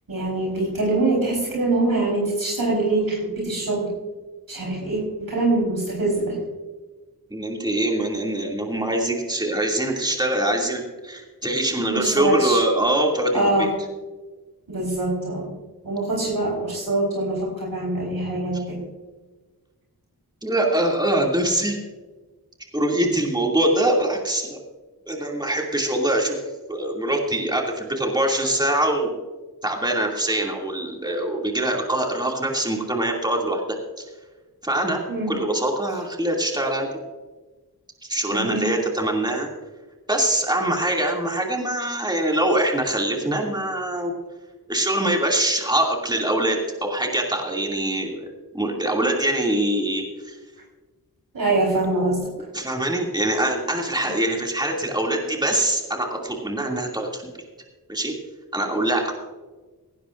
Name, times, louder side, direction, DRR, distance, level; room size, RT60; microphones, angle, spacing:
voice 1, 0.1-3.9 4.5-6.4 11.9-12.6 13.3-13.7 14.7-15.5 15.8-18.8 35.1-35.3 38.3-38.7 51.3-52.3, right 2 dB, 65° right, -3 dB, 4.4 m, -24 dB
voice 2, 7.3-13.7 18.5-18.6 20.4-21.8 22.7-24.6 25.1-26.4 26.7-29.1 29.6-33.8 34.6-35.0 35.3-36.9 38.0-39.5 40.1-44.1 44.7-48.2 48.5-50.4 52.5-57.3 57.9-58.1 58.5-59.1, right 1 dB, 10° right, -1 dB, 2.6 m, -23 dB
18.0 x 17.0 x 2.6 m, 1.3 s
wide cardioid pair, 85°, 38 cm